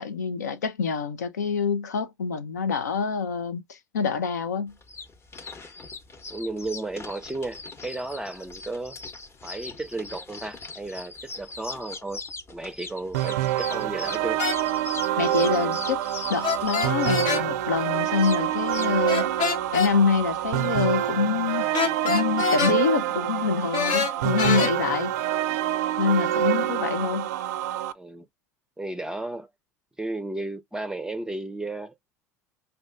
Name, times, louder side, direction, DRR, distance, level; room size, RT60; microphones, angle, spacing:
voice 1, 0.0-4.7 15.2-16.0 16.3-19.3 19.7-21.7 22.0-25.1 26.0-27.3, left 5 dB, 85° left, 0.5 m, -26 dB
sound 1, 4.7-20.7, left 3 dB, 30° left, 0.8 m, -40 dB
voice 2, 6.3-9.0 9.4-12.2 12.5-14.4 26.4-26.5 27.9-28.3 28.8-29.5 30.0-32.0, right 2 dB, 10° right, 0.5 m, -34 dB
sound 2, 13.1-27.9, right 13 dB, 75° right, 0.4 m, -26 dB
sound 3, 14.4-14.6 16.4-17.4 19.1-19.9 21.7-22.8 23.7-24.7, left 6 dB, 60° left, 0.8 m, -25 dB
5.0 x 2.2 x 2.4 m
hypercardioid pair, 70°, 9 cm